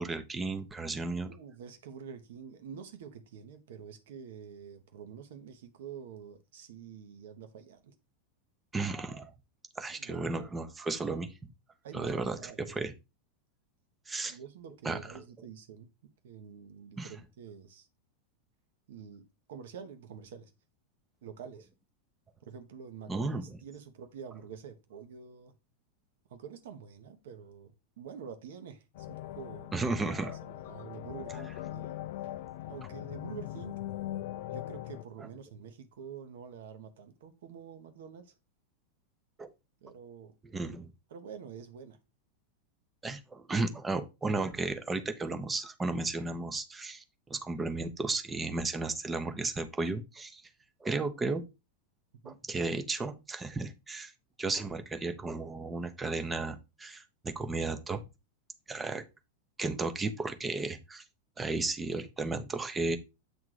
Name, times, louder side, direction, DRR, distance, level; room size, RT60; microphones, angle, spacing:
voice 1, 0.0-1.3 8.7-9.3 9.8-11.3 11.9-12.4 12.7-12.9 14.1-14.4 14.8-15.0 17.0-17.1 23.1-23.4 29.7-30.4 39.4-39.5 40.5-40.9 43.0-50.4 50.8-51.4 52.2-54.1 54.4-58.0 58.7-59.0 59.6-61.0 61.4-63.0, right 3 dB, 15° right, 0.9 m, -34 dB
voice 2, 1.3-7.9 10.0-10.2 11.8-12.8 14.3-15.9 16.2-17.9 18.9-19.2 19.5-20.5 21.2-21.7 22.4-25.5 26.3-30.0 30.4-32.0 32.7-33.7 34.5-38.3 39.8-40.4 41.1-42.0 52.2-52.4, right 7 dB, 55° right, 1.1 m, -47 dB
sound 1, 28.9-35.0, left 14 dB, 50° left, 0.3 m, -40 dB
8.2 x 3.6 x 4.9 m
figure-of-eight pair, 90°, 0 cm